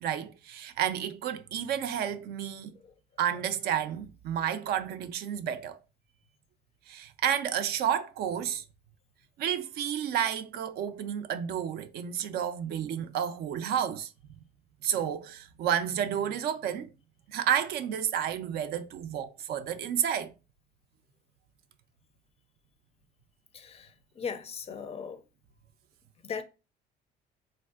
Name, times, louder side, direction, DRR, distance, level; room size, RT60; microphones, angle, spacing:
voice 1, 0.0-2.8 3.2-5.8 6.9-8.6 9.4-14.1 14.8-16.9 17.3-20.3, right 9 dB, 70° right, 0.4 m, -31 dB
voice 2, 23.5-25.2 26.2-26.4, left 6 dB, 35° left, 0.4 m, -38 dB
3.3 x 2.5 x 2.3 m
cardioid pair, 110°, 17 cm